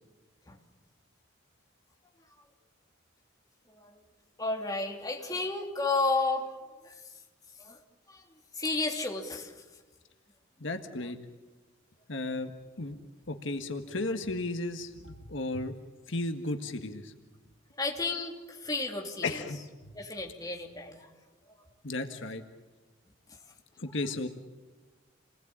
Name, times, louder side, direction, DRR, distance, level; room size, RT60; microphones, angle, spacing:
voice 1, 3.7-4.0 4.4-6.6 6.8-7.0 7.6-7.8 8.1-8.3 8.5-9.5 17.8-19.4 19.9-21.1, left 3 dB, 20° left, 1 dB, 3.1 m, -32 dB
voice 2, 10.6-11.2 12.1-12.5 12.8-13.0 13.3-15.7 16.1-17.1 19.2-19.9 21.8-22.4 23.8-24.3, left 2 dB, 70° left, 6 dB, 1.7 m, -34 dB
29.0 x 20.0 x 8.9 m, 1.3 s
head